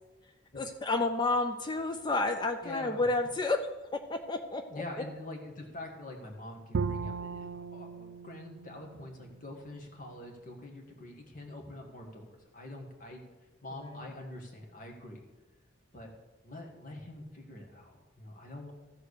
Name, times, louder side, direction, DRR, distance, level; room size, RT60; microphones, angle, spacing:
voice 1, 0.2-4.8 13.7-14.1, left 2 dB, 25° left, 7 dB, 0.5 m, -31 dB
voice 2, 2.6-3.0 4.7-13.3 13.6-15.2 15.9-16.1 16.4-18.7, left 2 dB, 45° left, 1 dB, 1.8 m, -45 dB
Bowed string instrument, 6.7-9.9, right 5 dB, 90° right, 0.4 m, -37 dB
13.5 x 4.7 x 6.6 m, 1.2 s
head